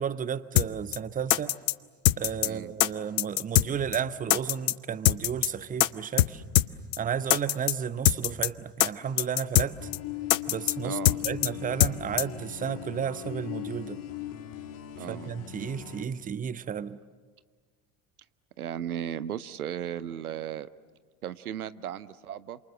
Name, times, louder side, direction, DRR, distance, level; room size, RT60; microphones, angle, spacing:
voice 1, 0.0-1.6 2.2-6.4 7.0-9.8 10.5-14.0 15.1-17.0, right 8 dB, 20° right, 0.8 m, -33 dB
sound 1, 0.6-0.7 0.9-1.0 1.3-1.7 2.0-2.5 2.8-2.9 3.2-3.7 3.9-4.0 4.3-4.7 5.0-5.5 5.8-5.9 6.2-6.3 6.5-6.7 6.9-7.0 7.3-7.7 8.0-8.5 8.8-8.9 9.2-9.7 9.9-10.0 10.3-10.7 11.0-11.5 11.8-11.9 12.2-12.3, left 15 dB, 70° left, 0.7 m, -22 dB
voice 2, 2.4-2.7 10.8-11.2 15.0-15.3 18.6-20.7 21.2-22.6, right 10 dB, 80° right, 0.7 m, -36 dB
sound 2, 9.6-16.0, left 13 dB, 45° left, 2.8 m, -39 dB
28.5 x 27.0 x 7.6 m
figure-of-eight pair, 65°, 44 cm